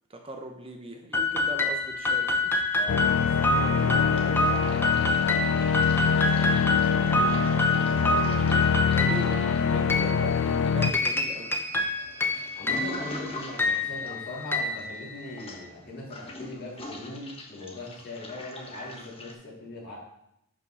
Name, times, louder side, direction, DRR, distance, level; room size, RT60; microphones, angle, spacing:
voice 1, 0.1-2.6 8.9-11.6, right 1 dB, 25° right, 3 dB, 0.8 m, -39 dB
sound 1, 1.1-15.6, left 2 dB, 10° left, 0.7 m, -28 dB
Toilet flush, 1.7-2.6 2.9-19.3, left 2 dB, 25° left, 1.3 m, -44 dB
voice 2, 2.7-8.9 12.6-20.0, left 2 dB, 50° left, -6 dB, 3.7 m, -41 dB
sound 2, 2.9-10.9, left 6 dB, 75° left, 0.4 m, -25 dB
11.5 x 5.3 x 4.1 m, 0.82 s
head